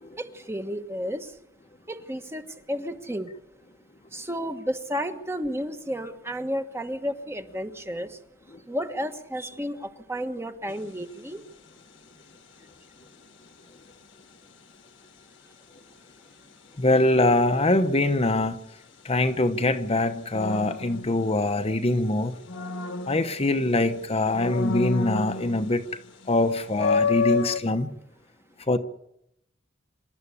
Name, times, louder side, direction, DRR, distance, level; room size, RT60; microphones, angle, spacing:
voice 1, 0.2-1.3 1.9-3.3 4.1-8.2 8.7-11.4, equal, 15° right, 1.4 m, -32 dB
sound 1, 10.7-11.0 20.3-21.8 22.2-23.8 24.3-25.9 26.2-26.3 26.7-27.6, left 4 dB, 70° left, 1.4 m, -29 dB
voice 2, 16.8-18.6 19.0-22.3 23.1-25.8 26.3-27.9 28.7-28.8, left 2 dB, 30° left, 1.0 m, -23 dB
26.0 x 12.5 x 8.4 m
head